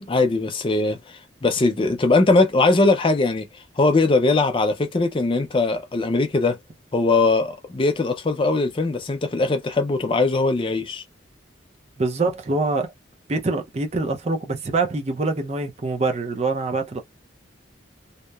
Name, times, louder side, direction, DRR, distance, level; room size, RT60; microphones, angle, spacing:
voice 1, 0.0-6.6 6.9-11.0, left 3 dB, 25° left, 0.4 m, -20 dB
voice 2, 12.0-12.9 13.3-17.0, right 3 dB, 35° right, 0.5 m, -24 dB
2.8 x 2.0 x 2.2 m
head